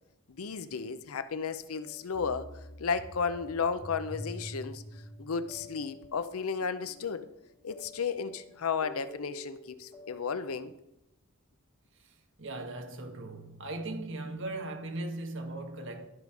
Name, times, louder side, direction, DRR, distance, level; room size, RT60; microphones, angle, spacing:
voice 1, 0.3-2.5 2.8-4.8 5.2-7.3 7.6-10.7, left 5 dB, 75° left, 0.6 m, -33 dB
sound 1, 1.7-10.2, left 1 dB, 30° left, 3.7 m, -47 dB
voice 2, 12.4-16.1, right 2 dB, 60° right, 1.2 m, -38 dB
12.5 x 5.3 x 4.7 m
head